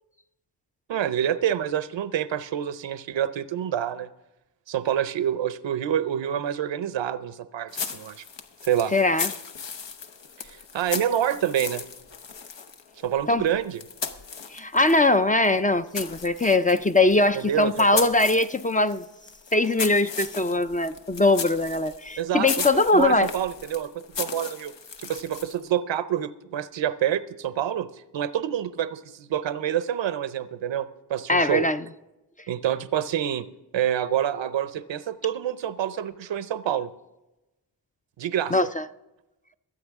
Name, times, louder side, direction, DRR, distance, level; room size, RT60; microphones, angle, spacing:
voice 1, 0.9-4.1 4.7-8.2 8.6-8.9 10.4-11.8 13.0-13.8 17.3-18.1 22.2-24.7 25.0-27.9 28.1-31.7 32.5-33.5 33.7-36.9 38.2-38.5, right 10 dB, 85° right, 14 dB, 0.6 m, -27 dB
sound 1, 7.7-15.1 15.4-25.7, left 6 dB, 80° left, 1.0 m, -36 dB
voice 2, 8.9-9.3 13.3-13.4 14.5-19.0 19.5-23.3 31.3-31.8 38.5-38.8, left 2 dB, 20° left, 10 dB, 0.4 m, -21 dB
22.0 x 8.7 x 3.6 m, 0.98 s
wide cardioid pair, 85°, 43 cm